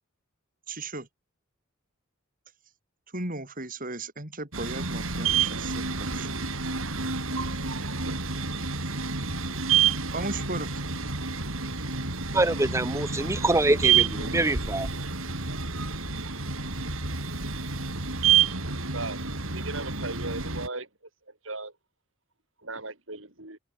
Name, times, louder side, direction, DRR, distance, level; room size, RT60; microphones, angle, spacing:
voice 1, 0.7-1.1 3.1-6.3 7.8-8.0 10.1-10.7, right 2 dB, 40° right, 7.6 m, -36 dB
sound 1, 4.5-20.7, right 6 dB, 80° right, 5.9 m, -28 dB
voice 2, 12.3-14.9, right 2 dB, 15° right, 0.9 m, -25 dB
voice 3, 19.5-20.9 21.4-21.7 22.6-23.6, right 3 dB, 65° right, 7.7 m, -36 dB
head